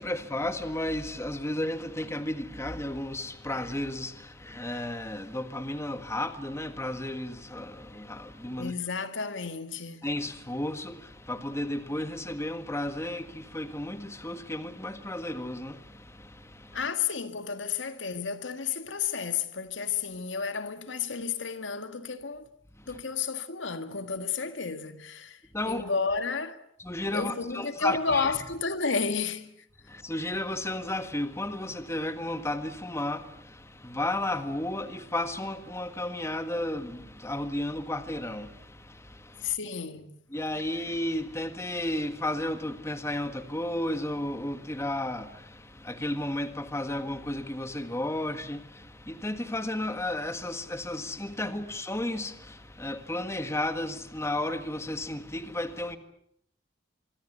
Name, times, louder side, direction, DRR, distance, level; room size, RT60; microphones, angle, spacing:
voice 1, 0.0-8.7 10.0-16.8 22.8-23.0 25.5-25.9 26.8-28.3 29.9-39.5 40.3-56.0, left 1 dB, 15° left, 1.7 m, -33 dB
voice 2, 8.6-10.1 16.7-22.5 22.9-26.6 27.1-29.5 39.4-40.1, left 5 dB, 90° left, 1.9 m, -32 dB
25.5 x 24.0 x 8.1 m
head